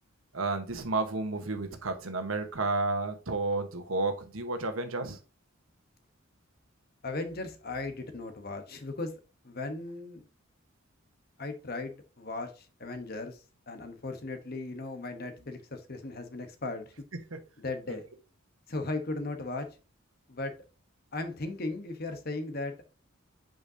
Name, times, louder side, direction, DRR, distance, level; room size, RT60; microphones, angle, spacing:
voice 1, 0.3-5.2 17.3-17.4 17.9-18.0, right 3 dB, 80° right, 7 dB, 1.2 m, -31 dB
voice 2, 7.0-9.1 9.4-10.3 11.4-16.9 17.6-18.1 18.7-19.8 20.3-20.6 21.1-22.8, left 2 dB, 45° left, 7 dB, 1.1 m, -37 dB
8.3 x 5.2 x 2.8 m, 0.33 s
head